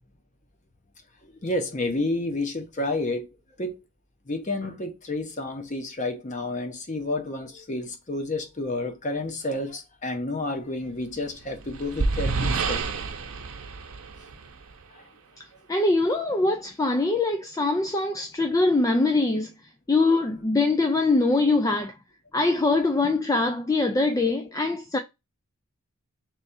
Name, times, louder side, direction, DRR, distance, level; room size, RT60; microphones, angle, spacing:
voice 1, 1.2-3.8 4.3-12.9 14.9-15.1, left 2 dB, 35° left, 0.9 m, -30 dB
sound 1, 11.2-14.8, right 3 dB, 80° right, 0.7 m, -29 dB
voice 2, 15.7-19.5 19.9-21.9 22.3-25.0, left 2 dB, 15° left, 0.3 m, -23 dB
3.3 x 3.2 x 4.2 m
head